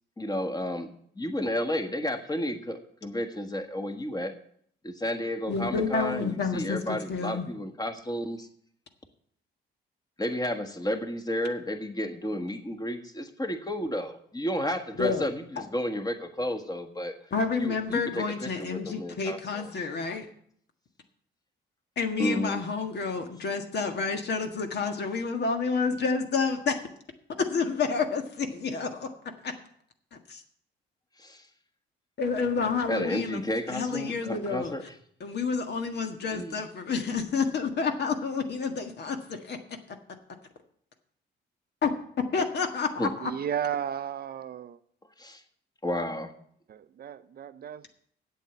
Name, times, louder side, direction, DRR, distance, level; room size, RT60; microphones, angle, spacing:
voice 1, 0.2-4.3 4.8-8.5 10.2-17.2 17.6-19.8 22.2-22.6 31.2-31.5 32.9-34.8 36.3-36.6 43.0-43.1 45.2-45.4 45.8-46.3, left 1 dB, 20° left, 1.6 m, -32 dB
voice 2, 5.5-7.5 15.0-15.3 17.3-20.3 22.0-26.8 27.4-29.1 29.4-29.5 30.1-30.4 32.2-33.4 33.7-34.7 35.2-39.6 41.8-41.9 42.3-43.3, left 5 dB, 60° left, 1.6 m, -29 dB
voice 3, 43.2-44.8 46.7-47.9, right 9 dB, 50° right, 0.6 m, -34 dB
8.3 x 8.0 x 8.1 m
cardioid pair, 90°, 20 cm